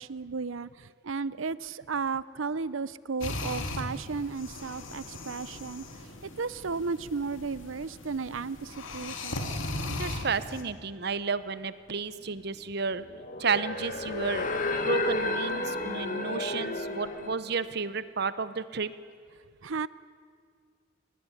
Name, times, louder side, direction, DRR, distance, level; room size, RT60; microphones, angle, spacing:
voice 1, 0.0-5.8 6.2-9.5 19.6-19.9, right 4 dB, 85° right, 18 dB, 0.7 m, -34 dB
sound 1, 3.2-10.6, left 2 dB, 85° left, 2.7 m, -38 dB
voice 2, 9.9-13.0 13.4-14.5 14.8-18.9, right 5 dB, 55° right, 15 dB, 0.9 m, -32 dB
sound 2, 12.9-17.3, left 2 dB, 40° left, 2.0 m, -32 dB
24.5 x 19.0 x 9.9 m, 2.1 s
head